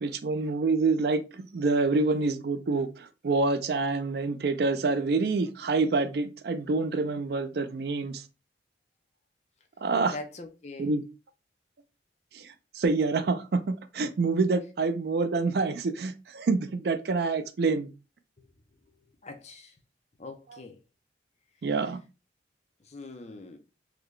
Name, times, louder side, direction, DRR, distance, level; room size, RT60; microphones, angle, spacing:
voice 1, 0.0-8.2 9.8-10.2 10.8-11.0 12.3-17.9 20.5-20.6 21.6-22.0, right 3 dB, 60° right, 0.4 m, -27 dB
voice 2, 10.1-10.9 19.2-19.7 20.2-20.8 22.9-23.6, left 3 dB, 40° left, 0.6 m, -42 dB
3.8 x 2.2 x 3.1 m
head